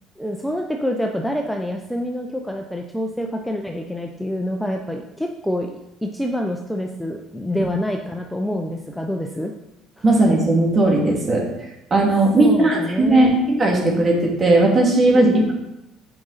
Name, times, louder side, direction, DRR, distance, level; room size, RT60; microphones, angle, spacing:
voice 1, 0.2-5.7 6.0-9.5 12.4-13.4 15.1-15.4, equal, ahead, 2 dB, 0.7 m, -26 dB
voice 2, 10.0-11.5 11.9-15.6, right 2 dB, 30° right, -1 dB, 2.4 m, -17 dB
8.6 x 5.2 x 4.1 m, 0.89 s
supercardioid pair, 90°, 0 cm